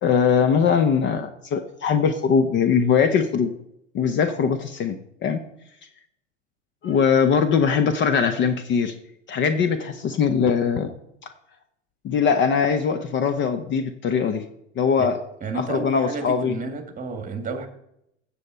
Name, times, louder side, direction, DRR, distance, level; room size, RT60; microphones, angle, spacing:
voice 1, 0.0-3.5 3.9-5.0 5.2-5.4 6.8-8.9 9.3-10.9 11.2-11.3 12.0-14.4 14.8-15.2 15.5-16.6, left 6 dB, 30° left, 9 dB, 0.9 m, -21 dB
voice 2, 15.4-17.7, right 4 dB, 20° right, 6 dB, 1.9 m, -31 dB
16.0 x 7.1 x 4.4 m, 0.79 s
hypercardioid pair, 95°, 38 cm